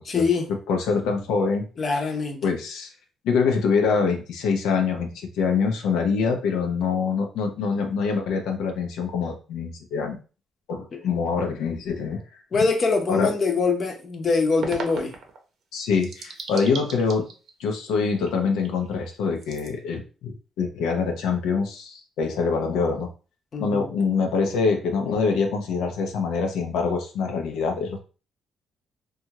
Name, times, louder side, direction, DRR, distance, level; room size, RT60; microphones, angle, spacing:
voice 1, 0.0-0.5 1.8-2.4 12.5-15.1 23.5-23.9, left 4 dB, 45° left, 0.7 m, -23 dB
voice 2, 0.7-1.6 1.9-2.1 2.4-2.9 3.2-10.2 10.7-12.2 13.1-13.3 15.7-17.3 17.6-23.1 23.6-28.0, left 5 dB, 90° left, 0.6 m, -25 dB
sound 1, 14.6-15.4 15.9-17.7 18.0-18.9 19.4-19.7, right 4 dB, 70° right, 0.7 m, -37 dB
2.7 x 2.4 x 2.8 m
cardioid pair, 90°, 0 cm